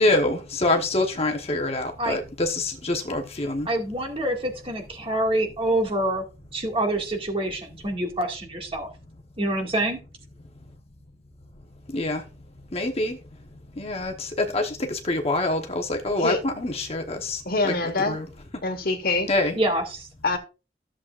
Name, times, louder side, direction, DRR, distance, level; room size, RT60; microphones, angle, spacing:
voice 1, 0.0-3.7 11.9-12.3 12.7-13.2 13.7-18.3 19.3-19.6, left 2 dB, 35° left, 1.0 m, -26 dB
voice 2, 3.7-6.2 6.5-8.9 9.4-10.0 19.6-20.1, right 1 dB, 35° right, 2.0 m, -26 dB
voice 3, 17.4-18.2 18.6-19.3 20.2-20.4, left 3 dB, 55° left, 1.5 m, -24 dB
13.5 x 7.5 x 2.4 m
head